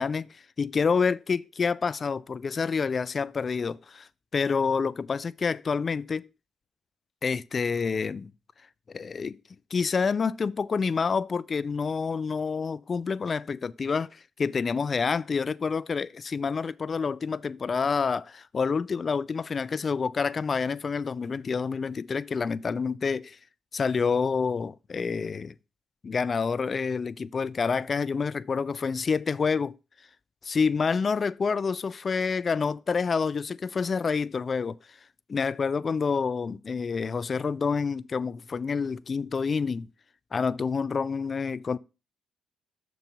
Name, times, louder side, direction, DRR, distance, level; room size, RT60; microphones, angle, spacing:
voice 1, 0.0-6.2 7.2-8.3 8.9-9.4 9.7-23.4 23.7-25.5 26.0-29.7 30.4-34.8 35.3-39.9 40.3-41.8, left 5 dB, 45° left, 0.4 m, -28 dB
6.6 x 4.6 x 5.2 m
supercardioid pair, 60°, 0 cm